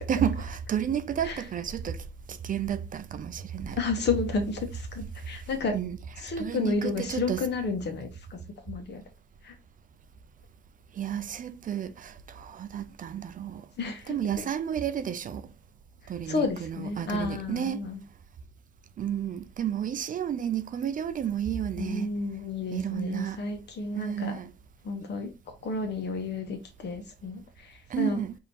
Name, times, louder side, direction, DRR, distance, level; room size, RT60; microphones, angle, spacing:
voice 1, 0.1-2.0 2.3-3.8 5.7-6.0 6.4-7.4 10.9-13.6 14.1-15.5 16.1-17.8 19.0-22.1 22.7-23.4 24.0-24.5 27.9-28.3, right 9 dB, 45° right, 0.4 m, -31 dB
voice 2, 3.7-5.8 6.2-8.4 8.6-9.0 9.4-9.5 13.8-14.2 16.2-18.0 21.8-24.4 24.8-28.2, left 3 dB, 60° left, 1.1 m, -31 dB
5.0 x 2.8 x 2.8 m
cardioid pair, 90°, 20 cm